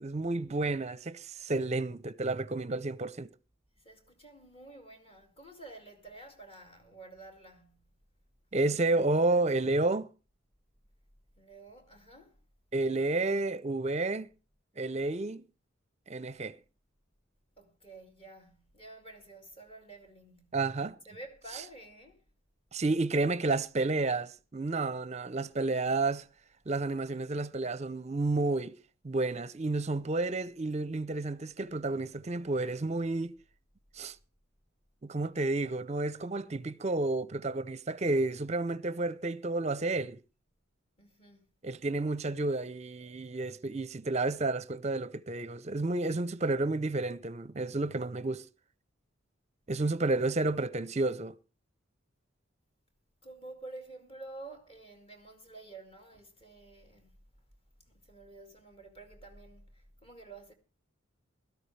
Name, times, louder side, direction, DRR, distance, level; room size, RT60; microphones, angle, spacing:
voice 1, 0.0-3.3 8.5-10.1 12.7-14.3 14.8-15.4 16.1-16.6 20.5-21.0 22.7-26.2 26.7-28.8 29.0-33.4 34.0-34.2 35.0-40.2 41.6-48.4 49.7-51.4, right 2 dB, 35° right, 0.6 m, -31 dB
voice 2, 3.8-7.9 8.5-9.3 11.4-12.4 17.6-20.6 21.1-22.2 41.0-41.5 53.2-57.2 57.8-60.5, right 2 dB, 30° left, 2.4 m, -50 dB
17.0 x 13.0 x 3.3 m
head